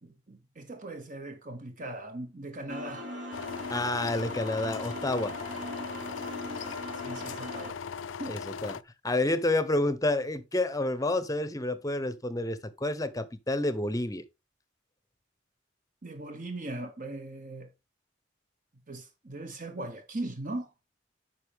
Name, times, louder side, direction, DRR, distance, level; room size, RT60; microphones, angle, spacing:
voice 1, 0.0-3.1 7.0-7.8 8.2-8.4 16.0-17.7 18.9-20.7, right 2 dB, 45° right, 1.3 m, -39 dB
sound 1, 2.7-7.7, equal, 70° right, 4.1 m, -40 dB
sound 2, 3.3-8.8, left 6 dB, 90° left, 0.4 m, -39 dB
voice 2, 3.7-5.4 8.3-8.8 9.0-14.2, left 2 dB, 20° left, 0.8 m, -29 dB
9.6 x 5.7 x 3.5 m
head